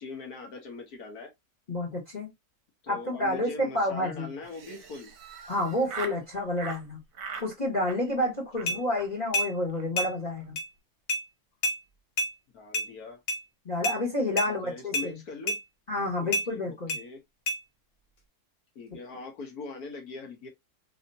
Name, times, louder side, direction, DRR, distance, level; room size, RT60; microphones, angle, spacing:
voice 1, 0.0-1.3 2.8-5.1 8.6-8.8 12.5-13.2 14.5-15.6 16.2-17.2 18.7-20.5, left 4 dB, 70° left, 1.5 m, -41 dB
voice 2, 1.7-2.3 2.9-4.3 5.5-7.0 7.4-10.6 13.6-15.2 15.9-17.0, left 1 dB, 30° left, 1.6 m, -29 dB
Laughter, 4.4-6.2 6.6-6.8 7.1-7.5 7.8-8.3 8.6-8.7 9.0-9.1 9.4-9.5 9.7-9.9 10.1-10.4, right 5 dB, 65° right, 1.1 m, -41 dB
sound 1, 8.7-8.8 9.3-9.5 10.0-10.1 10.6-10.7 11.1-11.2 11.6-11.8 12.2-12.3 12.7-12.9 13.3-13.4 13.8-14.0 14.4-14.5 14.9-15.1 15.5-15.6 16.3-16.5 16.9-17.0 17.5-17.6, left 1 dB, 45° left, 1.0 m, -28 dB
3.4 x 2.7 x 2.6 m
omnidirectional pair, 1.7 m